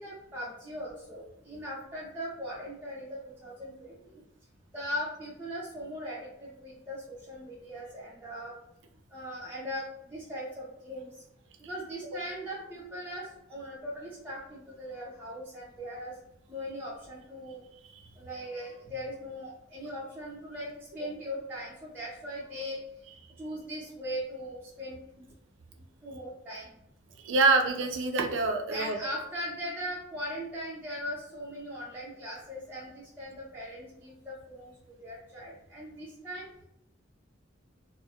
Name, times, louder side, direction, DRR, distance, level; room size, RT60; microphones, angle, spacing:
voice 1, 0.0-4.2 4.7-8.5 9.1-9.8 10.1-11.2 11.6-16.1 16.5-17.6 18.2-22.8 23.4-25.0 26.0-26.7 28.7-36.5, equal, 10° right, -8 dB, 0.5 m, -39 dB
voice 2, 27.2-29.0, right 3 dB, 75° right, 5 dB, 0.4 m, -25 dB
2.3 x 2.0 x 2.7 m, 0.79 s
head